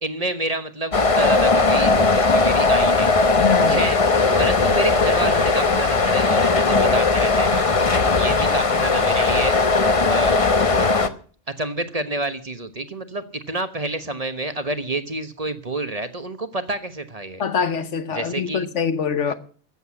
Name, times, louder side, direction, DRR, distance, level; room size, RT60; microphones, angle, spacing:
voice 1, 0.0-3.2 3.7-9.5 10.1-10.4 10.7-11.0 11.6-17.4 18.1-18.7 19.3-19.4, right 2 dB, 30° right, 1.2 m, -28 dB
sound 1, 0.9-11.1, left 3 dB, 30° left, 0.9 m, -18 dB
voice 2, 3.4-3.8 17.4-19.3, left 7 dB, 75° left, 1.4 m, -24 dB
14.0 x 8.0 x 9.9 m
omnidirectional pair, 1.3 m